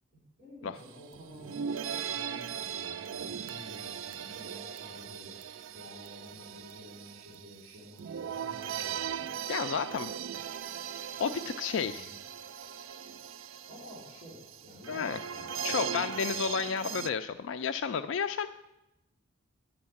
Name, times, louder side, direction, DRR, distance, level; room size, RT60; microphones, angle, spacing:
voice 1, 0.1-5.4 5.7-9.3 11.8-12.2 13.7-16.5, left 1 dB, 30° right, -7 dB, 3.6 m, -51 dB
sound 1, 0.8-0.9 1.1-17.1, right 8 dB, 70° right, 0.4 m, -39 dB
voice 2, 9.5-10.1 11.2-12.1 14.9-15.2 15.6-18.5, left 6 dB, 65° left, 9 dB, 0.3 m, -32 dB
9.4 x 6.4 x 8.5 m, 0.95 s
head